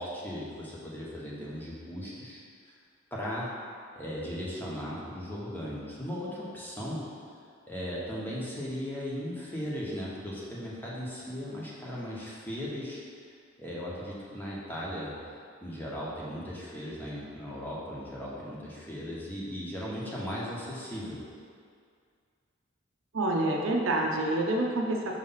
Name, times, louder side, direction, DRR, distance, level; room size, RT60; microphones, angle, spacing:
voice 1, 0.0-2.4 2.6-2.7 3.1-3.5 3.9-7.1 7.7-13.0 13.6-15.1 15.6-21.2, equal, 10° left, -7 dB, 1.0 m, -37 dB
voice 2, 23.1-25.1, right 2 dB, 75° right, 0 dB, 0.7 m, -27 dB
5.5 x 3.1 x 5.5 m, 2.2 s
head